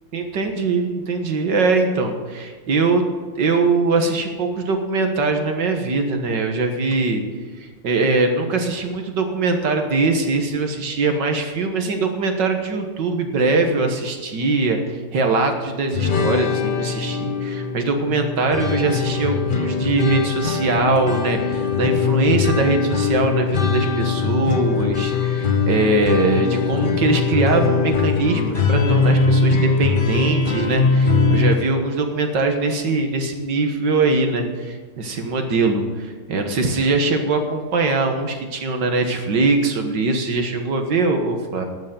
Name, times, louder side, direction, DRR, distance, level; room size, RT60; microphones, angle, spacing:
voice 1, 0.1-3.0 3.4-7.2 7.6-41.7, right 3 dB, 60° right, 5 dB, 2.0 m, -21 dB
sound 1, 15.9-31.6, left 4 dB, 70° left, 0.4 m, -21 dB
11.5 x 8.4 x 9.1 m, 1.4 s
omnidirectional pair, 2.3 m